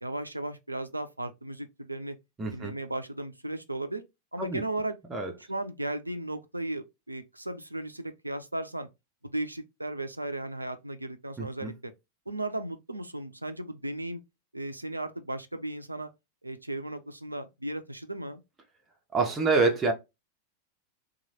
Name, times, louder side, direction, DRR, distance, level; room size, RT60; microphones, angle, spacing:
voice 1, 0.0-2.2 2.5-4.0 4.3-5.0 5.5-8.9 9.2-11.9 12.3-14.2 14.5-16.1 16.4-18.4, right 1 dB, 85° right, 0.4 m, -35 dB
voice 2, 2.4-2.7 4.4-4.6 5.1-5.3 11.4-11.7 19.1-19.9, right 3 dB, 15° right, 0.7 m, -26 dB
2.9 x 2.3 x 2.7 m
figure-of-eight pair, 90°, 0 cm